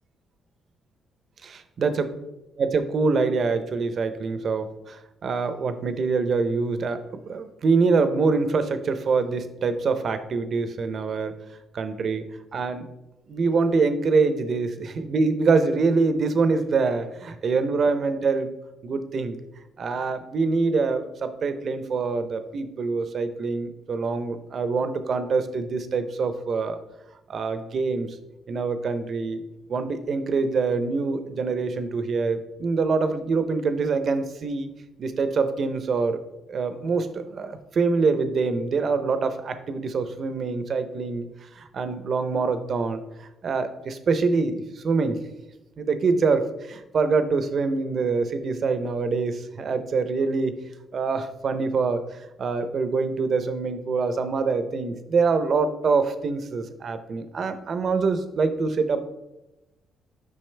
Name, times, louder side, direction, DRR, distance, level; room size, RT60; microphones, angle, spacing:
voice 1, 1.4-1.9 2.6-7.0 7.3-11.3 11.7-12.2 12.5-12.8 13.3-18.5 18.8-19.4 19.8-26.8 27.3-28.1 28.5-29.4 29.7-34.7 35.0-36.2 36.5-41.3 41.6-45.2 45.8-50.6 50.9-52.0 52.4-59.1, right 4 dB, 45° right, 10 dB, 0.7 m, -25 dB
8.9 x 5.9 x 3.3 m, 0.97 s
cardioid pair, 135°, 0 cm